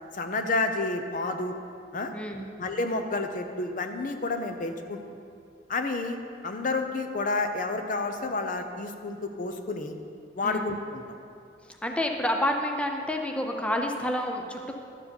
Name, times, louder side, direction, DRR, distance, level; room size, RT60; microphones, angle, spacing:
voice 1, 0.1-1.5 1.9-2.1 2.6-5.0 5.7-6.2 6.4-10.0 10.4-11.0, left 3 dB, 45° left, 6 dB, 0.6 m, -30 dB
voice 2, 2.1-2.5 10.4-10.7 11.8-14.7, left 1 dB, 5° left, 3 dB, 0.5 m, -29 dB
11.5 x 4.7 x 7.0 m, 2.4 s
head